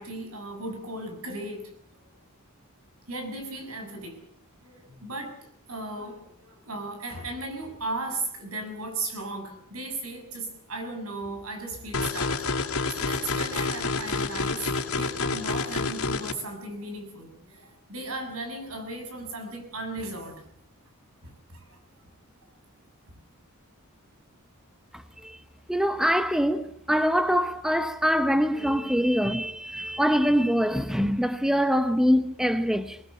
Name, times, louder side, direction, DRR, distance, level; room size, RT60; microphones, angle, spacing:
voice 1, 0.0-1.6 2.0-2.1 3.1-4.2 4.6-5.4 5.7-12.5 12.8-20.4 21.2-22.1 23.1-23.2, right 2 dB, 80° right, 7.4 m, -36 dB
sound 1, 11.9-16.3, left 3 dB, 75° left, 3.1 m, -28 dB
voice 2, 25.7-33.0, equal, ahead, 0.8 m, -24 dB
22.0 x 20.0 x 8.2 m
head